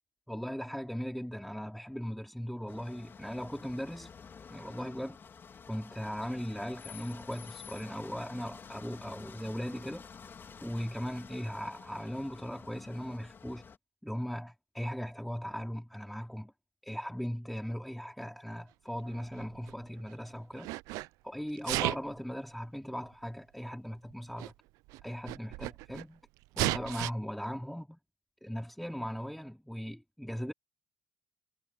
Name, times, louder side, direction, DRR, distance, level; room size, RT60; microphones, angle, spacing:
voice 1, 0.3-4.2 4.5-5.2 5.7-10.1 10.6-13.6 14.0-16.5 16.8-20.8 21.2-24.5 25.0-26.2 26.6-28.0 28.4-30.5, equal, ahead, 3.5 m, -38 dB
sound 1, 2.7-13.8, left 6 dB, 40° left, 3.5 m, -50 dB
Sneeze, 19.1-20.1 20.5-21.1 21.6-22.2 23.1-23.2 24.1-24.2 24.4-24.5 24.9-26.0 26.5-27.1, right 21 dB, 90° right, 0.4 m, -34 dB
cardioid pair, 85°, 6 cm